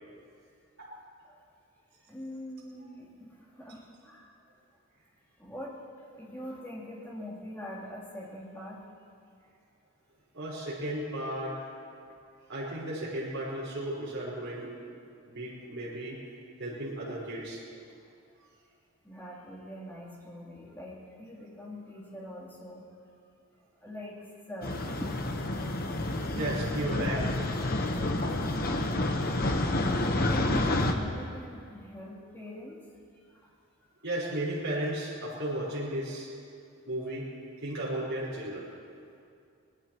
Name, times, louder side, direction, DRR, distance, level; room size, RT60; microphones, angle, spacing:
voice 1, 2.0-4.4 5.4-8.8 17.7-17.8 18.4-18.5 19.0-22.9 23.8-25.1 26.1-26.4 27.9-28.0 29.8-32.8 33.1-33.5, left 1 dB, 10° left, -6 dB, 3.1 m, -43 dB
voice 2, 10.3-11.6 12.5-14.7 15.3-16.2 16.6-17.6 26.4-27.3 34.0-36.3 36.8-37.3 37.6-38.7, right 1 dB, 65° right, -8 dB, 4.6 m, -34 dB
sound 1, 24.6-30.9, left 1 dB, 40° left, 1.0 m, -29 dB
23.5 x 19.5 x 3.0 m, 2.4 s
head